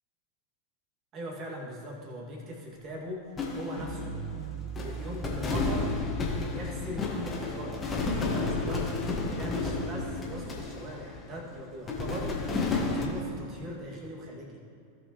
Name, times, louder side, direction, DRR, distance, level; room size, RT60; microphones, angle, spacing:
voice 1, 1.1-6.0 6.5-14.6, equal, 30° right, -2 dB, 2.2 m, -40 dB
sound 1, 3.4-4.5 4.8-11.4 11.9-13.0, left 3 dB, 20° left, 1.7 m, -32 dB
sound 2, 3.8-9.8, right 2 dB, 50° right, 1.8 m, -42 dB
17.5 x 6.1 x 3.1 m, 2.6 s
figure-of-eight pair, 90°, 0 cm